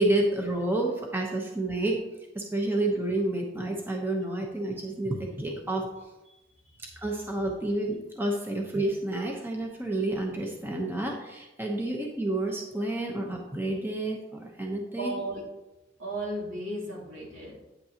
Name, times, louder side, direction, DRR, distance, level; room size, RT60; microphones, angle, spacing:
voice 1, 0.0-2.0 2.3-5.9 6.8-15.2, right 2 dB, 10° right, 0 dB, 0.8 m, -29 dB
voice 2, 6.3-7.0 15.0-15.4 16.0-17.5, right 1 dB, 75° right, -4 dB, 3.1 m, -36 dB
9.3 x 8.3 x 2.9 m, 1.0 s
head